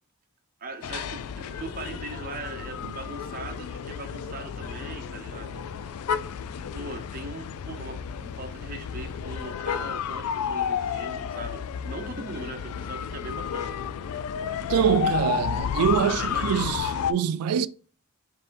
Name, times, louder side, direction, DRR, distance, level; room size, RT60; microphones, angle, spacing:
voice 1, 0.6-6.0 6.7-13.8 14.9-15.1 16.2-16.7, right 2 dB, 40° right, 0.7 m, -40 dB
sound 1, 0.8-17.1, left 7 dB, 85° left, 0.3 m, -31 dB
voice 2, 14.7-17.7, right 8 dB, 90° right, 0.3 m, -24 dB
5.3 x 2.7 x 2.5 m
head